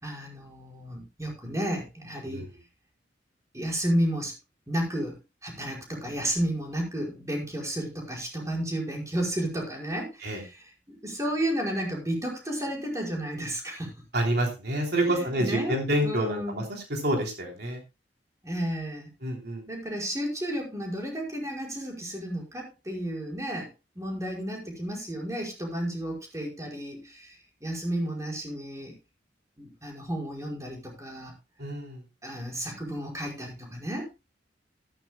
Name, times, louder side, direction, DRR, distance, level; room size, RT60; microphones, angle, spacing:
voice 1, 0.0-2.5 3.5-4.3 4.7-10.6 10.9-13.9 14.9-15.8 16.0-16.6 18.4-19.1 19.7-23.7 24.0-28.9 29.6-31.3 32.2-34.1, equal, 20° right, -1 dB, 5.3 m, -32 dB
voice 2, 2.2-2.5 10.2-10.4 14.1-17.8 19.2-19.6 31.6-32.0, right 1 dB, 65° right, 1 dB, 3.3 m, -28 dB
15.0 x 13.5 x 2.2 m, 0.25 s
head